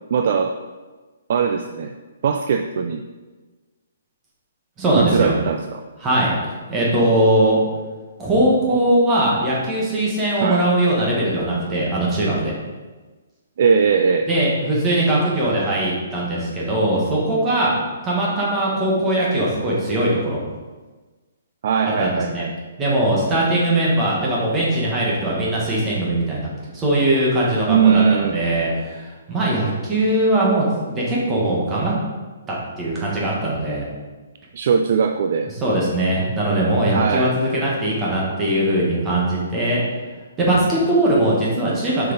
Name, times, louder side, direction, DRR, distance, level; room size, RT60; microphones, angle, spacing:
voice 1, 0.1-0.6 1.3-1.9 2.2-3.0 5.0-5.8 10.4-10.6 13.6-14.3 21.6-22.5 27.7-28.4 34.5-35.5 36.9-37.3, right 6 dB, 40° right, 6 dB, 0.3 m, -19 dB
voice 2, 4.8-5.3 6.0-6.3 6.7-7.6 8.2-12.5 14.3-17.7 18.0-20.4 21.8-22.4 22.8-26.5 26.7-28.0 28.3-31.9 32.5-33.9 35.6-39.8 40.4-42.1, right 1 dB, 10° right, -5 dB, 1.4 m, -20 dB
6.5 x 5.8 x 4.0 m, 1.3 s
hypercardioid pair, 175°, 0 cm